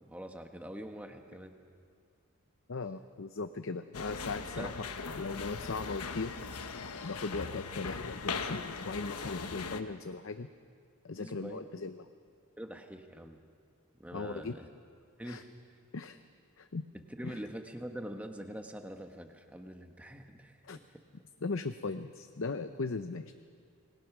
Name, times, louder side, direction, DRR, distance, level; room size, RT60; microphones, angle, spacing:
voice 1, 0.1-1.6 4.6-4.7 11.2-11.7 12.6-13.4 14.0-14.7 15.2-15.8 16.9-20.8, equal, 5° right, 5 dB, 1.2 m, -44 dB
voice 2, 2.7-4.7 5.2-6.3 7.0-10.5 11.0-12.1 14.1-14.6 15.2-15.4 15.9-16.2 16.6-16.9 17.2-17.4 20.6-20.8 21.4-23.3, left 3 dB, 60° left, 9 dB, 0.7 m, -38 dB
sound 1, 3.9-9.8, left 5 dB, 90° left, 1.2 m, -40 dB
26.5 x 20.5 x 6.1 m, 2.3 s
head